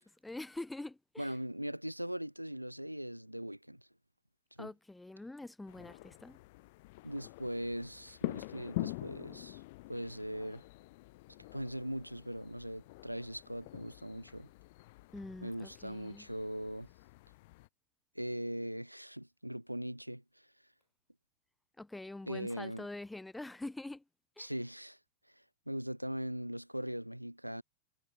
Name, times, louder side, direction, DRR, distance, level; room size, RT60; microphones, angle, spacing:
voice 1, 0.0-1.3 4.6-6.4 15.1-16.3 21.8-24.0 24.4-24.5, left 2 dB, 5° left, 3.8 m, -45 dB
voice 2, 1.2-3.9 4.6-4.7 7.0-9.6 9.9-10.6 11.5-14.5 15.4-16.9 18.1-20.5 22.3-22.9 24.4-25.0 25.7-27.6, equal, 90° right, 3.3 m, -40 dB
sound 1, 5.7-17.7, left 22 dB, 50° left, 2.5 m, -46 dB
figure-of-eight pair, 90°, 0 cm